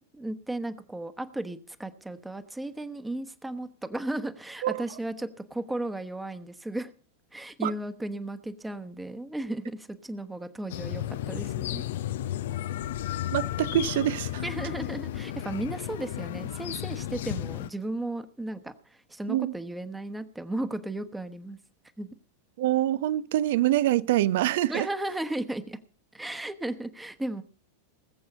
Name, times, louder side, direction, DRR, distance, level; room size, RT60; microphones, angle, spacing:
voice 1, 0.1-6.9 7.3-11.9 14.4-21.6 22.0-22.1 24.7-25.8 26.1-27.4, right 1 dB, 5° right, 1.2 m, -35 dB
sound 1, 10.7-17.7, left 12 dB, 55° left, 0.6 m, -33 dB
voice 2, 13.3-14.4 19.3-19.5 22.6-24.9, right 13 dB, 55° right, 0.7 m, -25 dB
19.5 x 7.8 x 5.4 m
figure-of-eight pair, 90°, 0 cm